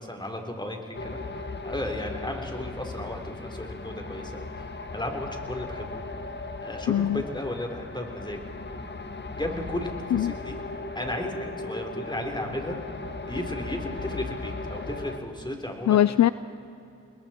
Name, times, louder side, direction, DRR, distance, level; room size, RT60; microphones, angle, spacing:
voice 1, 0.0-4.7 4.9-6.0 6.6-8.4 9.4-10.6 10.9-12.8 13.3-16.0, left 1 dB, 15° left, 2 dB, 4.0 m, -34 dB
sound 1, 0.9-15.2, left 3 dB, 40° left, 1.5 m, -37 dB
voice 2, 6.9-7.2 10.1-10.3 15.9-16.3, left 11 dB, 70° left, 16 dB, 0.5 m, -21 dB
27.5 x 20.5 x 4.5 m, 2.7 s
cardioid pair, 45°, 29 cm